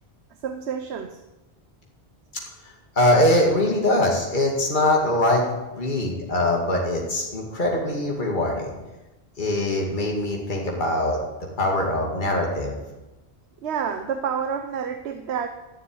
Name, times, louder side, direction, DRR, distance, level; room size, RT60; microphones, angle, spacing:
voice 1, 0.4-1.2 13.6-15.5, right 7 dB, 80° right, 8 dB, 1.1 m, -28 dB
voice 2, 2.6-5.4 5.7-8.7 9.4-11.2 11.6-12.8, left 1 dB, 50° left, -1 dB, 2.4 m, -22 dB
13.5 x 7.0 x 9.8 m, 1.1 s
omnidirectional pair, 1.1 m